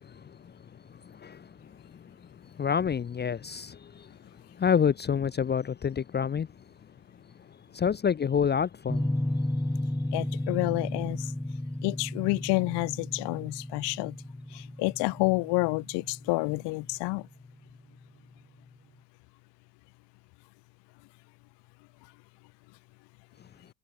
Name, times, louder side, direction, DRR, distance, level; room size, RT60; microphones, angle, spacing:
voice 1, 0.0-0.5 0.9-2.0 2.4-4.2 4.6-6.5 7.7-9.1, left 7 dB, 25° left, 1.0 m, -28 dB
sound 1, 8.9-17.6, left 1 dB, 5° left, 5.6 m, -33 dB
voice 2, 10.1-11.3 11.8-14.2 14.5-17.3, left 25 dB, 80° left, 3.5 m, -29 dB
cardioid pair, 135°, 41 cm